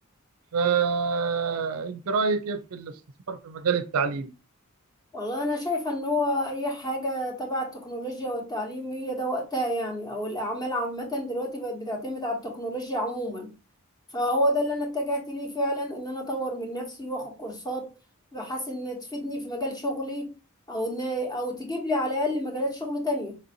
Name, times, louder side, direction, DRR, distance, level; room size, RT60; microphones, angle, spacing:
voice 1, 0.5-3.0 3.3-4.3, right 5 dB, 85° right, 0.5 m, -26 dB
voice 2, 5.1-13.5 14.1-17.9 18.3-20.3 20.7-23.4, equal, 20° left, 1.0 m, -29 dB
4.1 x 2.6 x 2.8 m
head